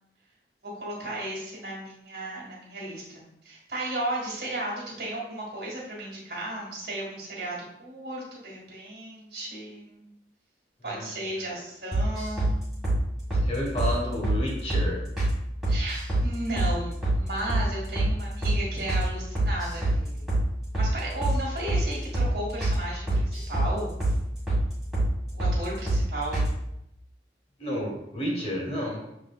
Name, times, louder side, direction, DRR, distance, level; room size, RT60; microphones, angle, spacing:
voice 1, 0.6-10.0 10.8-12.8 15.7-20.2 20.7-23.9 25.3-26.5, right 1 dB, 65° right, -5 dB, 1.8 m, -35 dB
sound 1, 11.9-12.5 12.8-13.0 13.3-13.5 13.8-13.9 14.2-14.4 14.7-14.9 15.2-15.3 15.6-16.3 16.6-16.7 17.0-17.2 17.5-17.7 18.0-18.1 18.4-18.6 18.9-19.1 19.4-20.0 20.3-20.4 20.7-20.9 21.2-21.4 21.7-21.8 22.1-22.3 22.6-22.8 23.1-23.7 24.0-24.2 24.5-24.6 24.9-25.1 25.4-25.6 25.9-26.0 26.3-26.5, right 1 dB, 5° right, 1.7 m, -24 dB
voice 2, 13.4-15.1 27.6-29.0, left 1 dB, 35° left, -2 dB, 1.3 m, -31 dB
7.3 x 2.9 x 2.4 m, 0.80 s
head